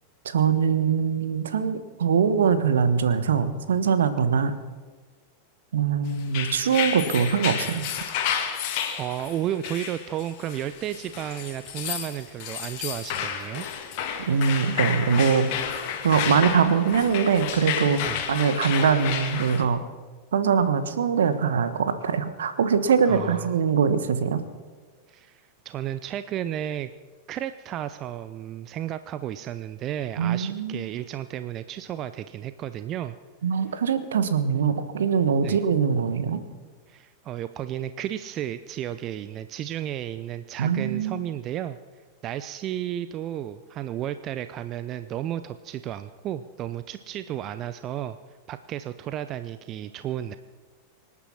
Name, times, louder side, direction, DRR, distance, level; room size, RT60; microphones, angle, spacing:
voice 1, 0.2-4.6 5.7-7.9 14.2-15.5 16.0-18.0 18.3-19.8 20.3-24.4 30.2-30.8 33.4-36.4 40.6-41.2, right 6 dB, 65° right, 11 dB, 1.3 m, -22 dB
sound 1, 6.2-19.6, left 8 dB, 45° left, 2.2 m, -31 dB
voice 2, 9.0-13.7 18.0-18.2 23.0-23.5 25.1-26.9 27.3-33.2 35.4-35.6 36.9-41.8 42.2-48.2 48.5-50.4, right 11 dB, 35° right, 12 dB, 0.6 m, -33 dB
25.5 x 9.8 x 5.8 m, 1.4 s
figure-of-eight pair, 90°, 0 cm